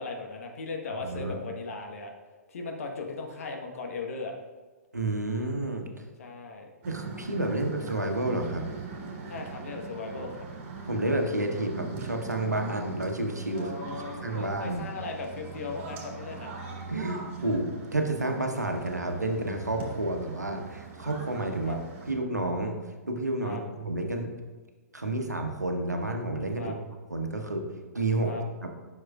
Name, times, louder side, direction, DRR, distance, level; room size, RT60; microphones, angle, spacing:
voice 1, 0.0-2.1 2.5-4.3 6.2-6.7 9.3-10.5 13.5-16.5 21.6-21.8 23.4-23.6 26.5-26.7 28.2-28.4, left 3 dB, 60° left, 2 dB, 1.3 m, -37 dB
voice 2, 1.0-1.4 4.9-6.0 6.9-8.8 10.8-13.7 14.2-14.8 16.9-21.8 22.1-22.8 23.1-24.3 24.9-26.7 27.1-27.7 27.9-28.3 28.6-28.7, right 2 dB, 85° right, 3 dB, 1.1 m, -30 dB
sound 1, 6.8-22.1, right 4 dB, 40° right, 2.3 m, -41 dB
11.0 x 6.3 x 2.4 m, 1.3 s
figure-of-eight pair, 115°, 9 cm